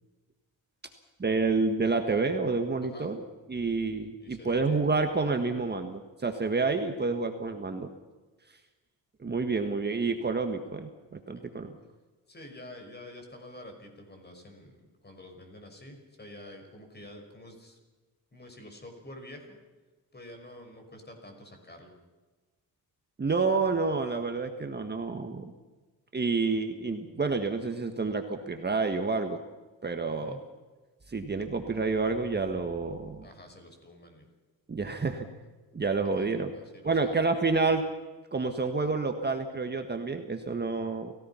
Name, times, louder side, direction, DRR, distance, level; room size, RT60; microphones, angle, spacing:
voice 1, 1.2-7.9 9.2-11.7 23.2-25.5 26.1-29.4 29.8-30.4 31.1-33.3 34.7-35.3 35.7-36.5 36.8-37.8 38.3-41.1, right 4 dB, 30° right, 6 dB, 1.6 m, -29 dB
voice 2, 2.8-3.2 4.2-4.9 11.3-11.4 12.3-17.8 18.3-19.6 20.1-21.9 30.2-30.4 33.2-34.3 36.2-37.3, left 1 dB, 30° left, 4 dB, 5.8 m, -48 dB
29.0 x 16.5 x 5.8 m, 1.3 s
cardioid pair, 95°, 36 cm